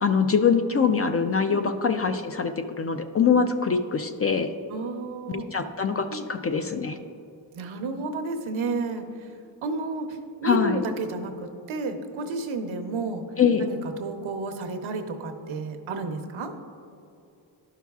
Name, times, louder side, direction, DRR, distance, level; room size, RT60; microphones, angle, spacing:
voice 1, 0.0-4.5 5.3-7.0 10.4-10.8 13.4-13.7, left 6 dB, 30° left, 7 dB, 0.4 m, -23 dB
voice 2, 4.7-5.5 6.1-6.3 7.5-9.3 9.6-13.2 13.6-16.5, right 3 dB, 75° right, 6 dB, 0.9 m, -31 dB
11.0 x 5.7 x 2.4 m, 2.7 s
cardioid pair, 70°, 49 cm